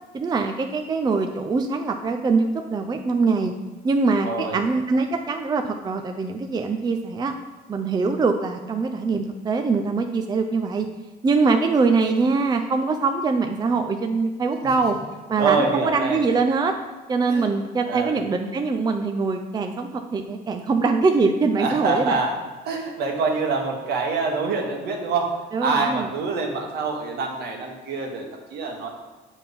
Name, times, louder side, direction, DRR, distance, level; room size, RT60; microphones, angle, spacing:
voice 1, 0.1-3.5 3.8-7.3 7.7-10.9 11.2-15.0 15.3-16.8 17.1-22.2 25.5-26.1, right 4 dB, 25° right, 5 dB, 0.5 m, -23 dB
voice 2, 4.2-4.6 15.4-16.2 17.3-17.5 17.8-18.1 21.6-22.3 22.6-28.9, right 4 dB, 70° right, 1 dB, 1.5 m, -25 dB
7.2 x 4.3 x 5.3 m, 1.2 s
cardioid pair, 110°, 17 cm